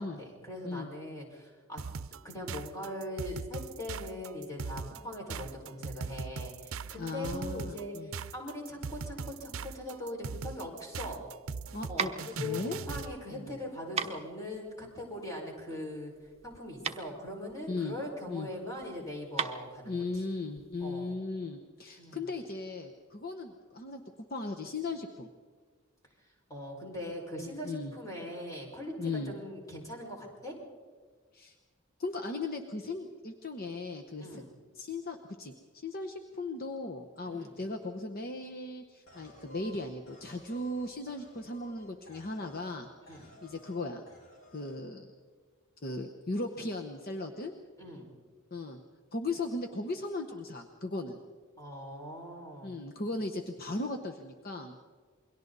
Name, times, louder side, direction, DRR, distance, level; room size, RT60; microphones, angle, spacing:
voice 1, 0.0-1.8 2.2-11.3 11.9-12.1 12.4-16.1 16.4-19.9 20.8-21.1 22.0-22.2 26.5-30.6 34.2-34.5 37.2-37.5 43.1-43.3 47.8-48.1 51.6-52.8, left 1 dB, 15° left, -1 dB, 5.3 m, -41 dB
sound 1, 1.8-13.2, right 5 dB, 80° right, 0.6 m, -40 dB
voice 2, 7.0-8.1 11.7-12.8 13.3-13.6 17.7-18.0 18.3-18.5 19.8-24.0 24.3-25.3 27.4-27.9 29.0-29.3 31.3-31.5 32.0-34.4 34.7-44.0 44.5-45.1 45.8-47.5 48.5-48.8 49.1-51.2 52.6-54.7, left 2 dB, 45° left, 4 dB, 1.1 m, -37 dB
sound 2, 11.3-20.9, right 6 dB, 30° right, 1.0 m, -39 dB
sound 3, 39.1-42.8 43.1-43.8 44.1-44.8, left 1 dB, 80° left, 4.8 m, -54 dB
28.5 x 22.5 x 4.1 m, 1.6 s
head